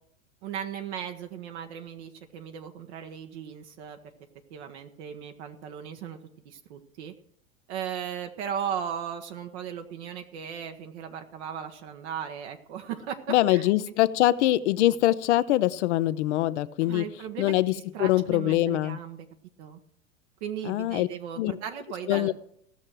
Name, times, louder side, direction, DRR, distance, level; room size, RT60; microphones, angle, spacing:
voice 1, 0.4-4.0 4.5-6.2 6.4-7.1 7.7-13.7 16.8-17.5 17.9-19.3 19.6-19.8 20.4-22.3, right 8 dB, 55° right, 5 dB, 1.2 m, -37 dB
voice 2, 13.3-17.0 17.4-17.7 18.0-19.0 20.6-21.1 21.4-21.6 22.1-22.3, left 15 dB, 55° left, 15 dB, 0.8 m, -23 dB
16.5 x 6.5 x 6.1 m, 0.69 s
hypercardioid pair, 95°, 41 cm